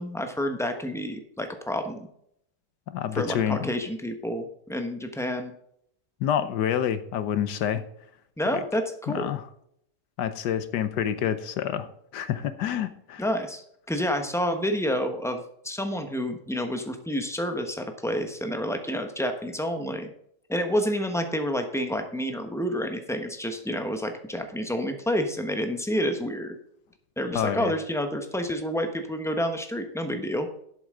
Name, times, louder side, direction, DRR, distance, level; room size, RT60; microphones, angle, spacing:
voice 1, 0.0-2.1 3.2-5.5 8.4-9.3 13.2-20.1 20.5-26.6 27.2-30.5, equal, ahead, 6 dB, 0.8 m, -29 dB
voice 2, 2.9-3.7 6.2-7.8 8.5-8.6 9.1-9.5 10.2-13.3 27.3-27.7, left 9 dB, 75° left, 12 dB, 1.3 m, -28 dB
11.5 x 8.0 x 3.7 m, 0.71 s
omnidirectional pair, 1.9 m